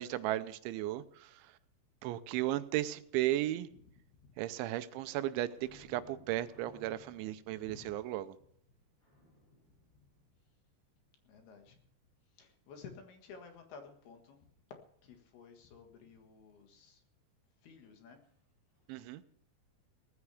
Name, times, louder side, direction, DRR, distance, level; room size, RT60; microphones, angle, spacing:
voice 1, 0.0-1.4 2.0-3.7 4.4-8.4 18.9-19.2, right 14 dB, 85° right, 12 dB, 3.1 m, -35 dB
sound 1, 5.5-10.9 18.2-18.4 18.7-18.9, equal, 35° left, 8.1 m, -62 dB
voice 2, 11.3-11.8 12.4-14.4 15.0-17.0 17.6-18.2, left 5 dB, 65° left, 4 dB, 3.4 m, -53 dB
19.0 x 14.5 x 3.4 m, 0.66 s
omnidirectional pair, 5.3 m